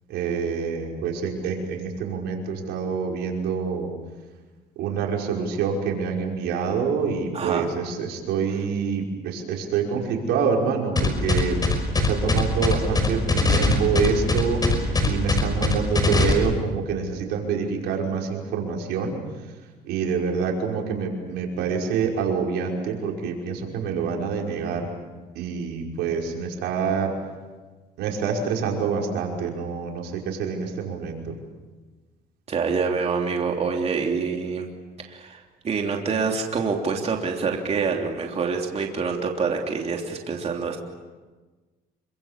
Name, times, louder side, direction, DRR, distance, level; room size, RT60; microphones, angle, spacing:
voice 1, 0.1-3.9 4.8-19.2 19.8-24.9 25.3-27.1 28.0-31.3, right 6 dB, 85° right, 0 dB, 5.6 m, -26 dB
voice 2, 7.3-7.7 32.5-34.7 35.1-40.8, right 5 dB, 40° right, 1 dB, 3.2 m, -26 dB
sound 1, 11.0-16.3, left 3 dB, 25° left, 5.7 m, -20 dB
27.5 x 25.0 x 7.4 m, 1.3 s
cardioid pair, 110°, 17 cm